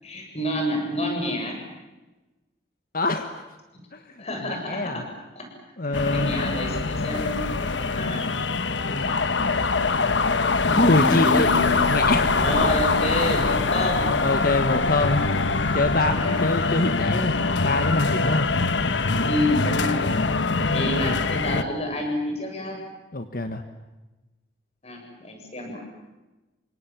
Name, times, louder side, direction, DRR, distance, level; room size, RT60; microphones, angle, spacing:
voice 1, 0.0-1.6 4.2-5.0 5.3-5.5 5.8-7.5 7.9-8.2 10.6-11.7 12.4-14.1 15.9-16.4 19.3-20.0 20.7-22.8 24.8-25.8, left 1 dB, 35° left, 2 dB, 7.4 m, -28 dB
voice 2, 2.9-3.4 3.9-4.0 4.5-5.0 5.8-6.3 8.8-9.1 10.8-11.5 11.9-12.3 12.5-12.7 14.2-15.3 15.7-17.4 17.6-18.5 20.8-21.2 23.1-23.6, left 2 dB, 50° left, 8 dB, 1.4 m, -24 dB
sound 1, 5.9-21.6, left 4 dB, 80° left, 1.2 m, -23 dB
sound 2, 11.4-16.2, right 2 dB, 65° right, 0.8 m, -35 dB
29.0 x 25.5 x 7.5 m, 1.1 s
head